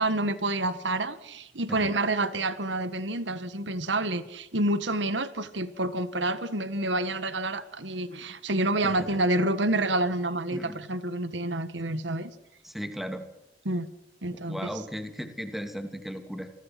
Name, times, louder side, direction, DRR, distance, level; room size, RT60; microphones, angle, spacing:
voice 1, 0.0-12.3 13.7-13.9 14.2-14.7, right 2 dB, 80° right, 12 dB, 1.7 m, -28 dB
voice 2, 10.5-10.8 12.6-13.2 14.3-16.5, equal, ahead, 7 dB, 2.7 m, -36 dB
28.5 x 22.0 x 6.1 m, 0.92 s
head